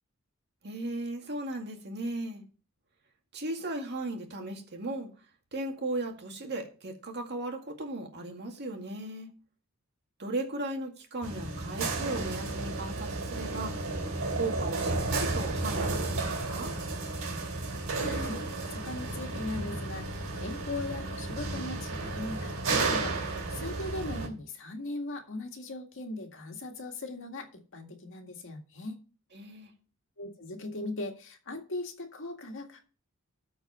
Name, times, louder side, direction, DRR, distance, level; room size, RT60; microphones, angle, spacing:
voice 1, 0.6-2.4 3.3-5.1 5.5-9.3 10.2-13.7 14.4-16.7 29.3-29.7, right 2 dB, 50° right, 3 dB, 2.1 m, -36 dB
sound 1, 11.2-24.3, right 3 dB, 65° right, 2.9 m, -33 dB
voice 2, 18.0-18.4 18.7-23.2 23.5-29.0 30.2-32.8, left 2 dB, 60° left, 4 dB, 1.9 m, -39 dB
13.5 x 4.6 x 5.5 m, 0.37 s
head